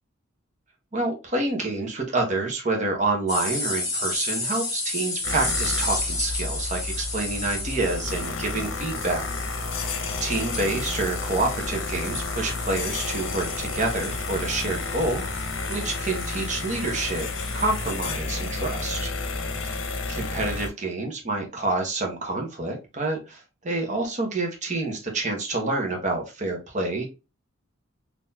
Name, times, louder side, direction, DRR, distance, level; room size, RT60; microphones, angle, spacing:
voice 1, 0.9-9.5 10.2-17.3 17.5-19.1 20.1-27.1, right 2 dB, 40° right, 2 dB, 1.1 m, -28 dB
sound 1, 3.3-18.1, left 2 dB, 20° left, 1.8 m, -33 dB
sound 2, 5.2-20.7, left 3 dB, 70° left, 0.7 m, -31 dB
3.9 x 2.9 x 2.7 m, 0.27 s
head